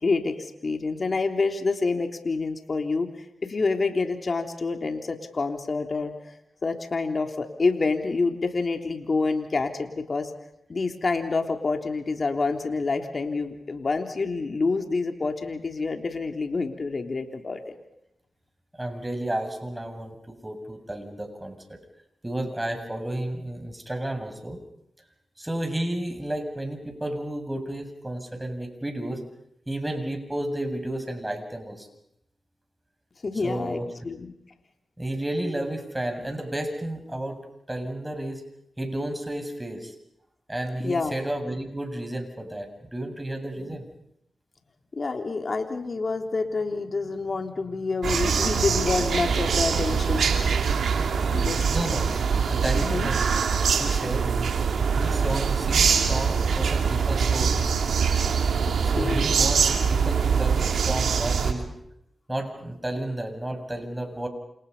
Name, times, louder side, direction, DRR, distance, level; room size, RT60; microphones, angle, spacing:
voice 1, 0.0-3.1 3.4-6.1 6.6-10.3 10.7-17.7 33.2-34.3 40.8-41.2 43.7-43.8 44.9-50.3 51.3-51.6 52.7-53.1 58.7-59.3, left 3 dB, 55° left, 5 dB, 3.4 m, -27 dB
voice 2, 18.8-21.8 22.2-24.6 25.4-29.2 29.7-31.9 33.4-33.9 35.0-37.4 37.7-38.4 38.8-39.9 40.5-43.8 51.7-52.1 52.5-53.4 53.8-54.3 55.0-57.6 58.8-61.7 62.3-64.3, right 1 dB, 20° right, 5 dB, 7.7 m, -32 dB
sound 1, 48.0-61.5, right 6 dB, 85° right, 2.8 m, -23 dB
29.0 x 28.5 x 5.7 m, 0.79 s
cardioid pair, 45°, 0 cm